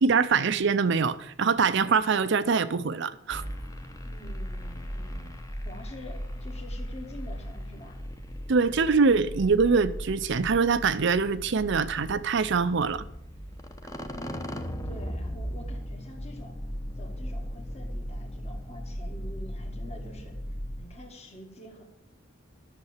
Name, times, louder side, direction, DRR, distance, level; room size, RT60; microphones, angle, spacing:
voice 1, 0.0-3.4 8.5-13.1, right 5 dB, 65° right, 0.5 m, -24 dB
sound 1, 3.3-20.8, equal, 15° left, 0.9 m, -37 dB
voice 2, 4.0-5.3 5.6-8.0 14.1-16.6 17.0-20.3 20.8-21.8, left 1 dB, 35° left, 1.8 m, -47 dB
11.0 x 6.8 x 7.2 m
head